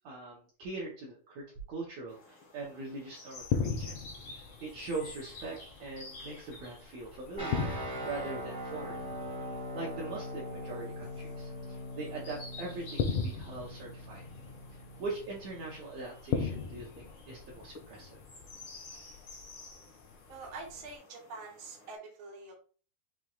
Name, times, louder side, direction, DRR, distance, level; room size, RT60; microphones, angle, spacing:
voice 1, 0.0-4.0 4.6-9.0 9.7-14.2 14.7-18.2, right 3 dB, 80° right, -3 dB, 1.5 m, -42 dB
sound 1, 2.1-21.9, left 3 dB, 65° left, 1.1 m, -53 dB
sound 2, 3.4-21.0, left 6 dB, 85° left, 1.7 m, -40 dB
sound 3, 7.4-16.3, equal, 25° right, 0.4 m, -42 dB
voice 2, 20.3-22.5, right 3 dB, 60° right, -1 dB, 1.4 m, -45 dB
6.1 x 3.1 x 2.3 m, 0.40 s
omnidirectional pair, 4.3 m